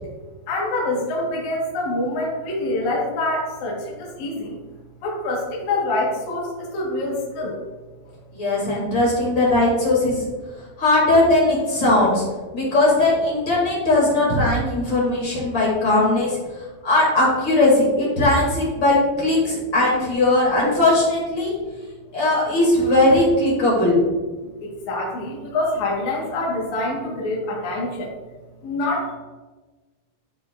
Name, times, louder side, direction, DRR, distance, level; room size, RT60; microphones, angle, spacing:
voice 1, 0.5-4.6 5.0-7.6 24.4-28.1 28.6-29.2, left 2 dB, 65° left, -4 dB, 2.0 m, -26 dB
voice 2, 8.3-10.2 10.8-12.2 12.5-16.4 16.8-21.5 22.1-24.0, left 2 dB, 35° left, -5 dB, 2.0 m, -19 dB
13.5 x 5.0 x 2.4 m, 1.3 s
omnidirectional pair, 5.2 m